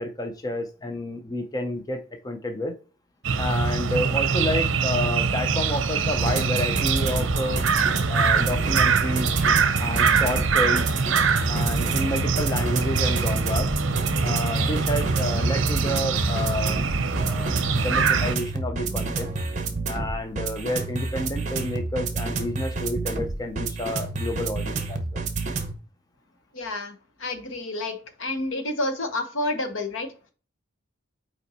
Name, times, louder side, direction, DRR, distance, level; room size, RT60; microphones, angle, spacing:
voice 1, 0.0-2.7 3.4-7.6 8.1-9.3 9.8-11.0 11.5-13.7 14.2-17.5 17.8-19.3 19.9-25.2, left 1 dB, 20° left, 6 dB, 0.5 m, -30 dB
sound 1, 3.2-18.3, right 5 dB, 65° right, 0.7 m, -24 dB
sound 2, 6.2-25.7, right 3 dB, 35° right, 0.9 m, -29 dB
voice 2, 26.5-26.9 27.2-30.1, left 2 dB, 70° left, 8 dB, 1.0 m, -29 dB
5.6 x 4.3 x 4.1 m, 0.36 s
head